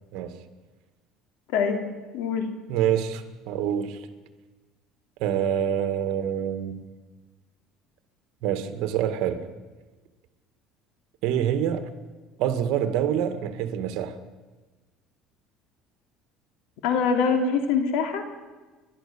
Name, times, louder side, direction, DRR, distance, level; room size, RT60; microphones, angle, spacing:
voice 1, 2.1-2.5 16.8-18.3, left 5 dB, 75° left, 3.0 m, -23 dB
voice 2, 2.7-4.1 5.2-6.9 8.4-9.5 11.2-11.9 12.4-14.2, right 9 dB, 70° right, 2.0 m, -26 dB
29.5 x 12.5 x 7.1 m
cardioid pair, 125°, 0 cm